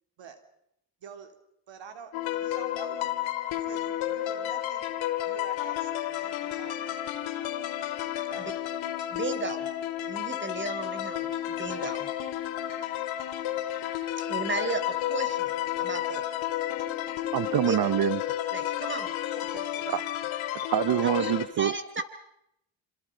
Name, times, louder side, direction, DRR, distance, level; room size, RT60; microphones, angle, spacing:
voice 1, 1.0-1.4 1.7-3.2 3.5-4.9 5.2-7.0 8.3-8.6 19.4-19.8, right 6 dB, 70° right, 3.7 m, -47 dB
sound 1, 2.1-21.5, left 12 dB, 90° left, 2.2 m, -32 dB
voice 2, 9.1-9.7 10.1-12.1 14.2-16.3 17.6-17.8 18.5-19.1 21.2-21.3 21.6-22.0, right 2 dB, 25° right, 4.1 m, -34 dB
voice 3, 17.3-18.2 19.9-20.0 20.7-21.7, right 10 dB, 55° right, 0.9 m, -25 dB
27.5 x 26.5 x 5.3 m
supercardioid pair, 60°, 46 cm